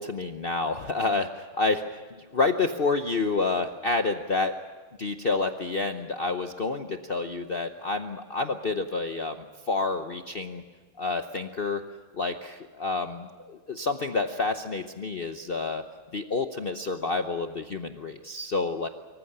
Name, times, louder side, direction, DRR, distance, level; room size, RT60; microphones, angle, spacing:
voice 1, 0.0-4.5 5.0-9.4 9.7-10.6 11.0-11.8 12.1-15.8 16.1-18.9, left 3 dB, 80° left, 7 dB, 0.5 m, -29 dB
25.0 x 15.0 x 9.8 m, 1.4 s
omnidirectional pair, 2.4 m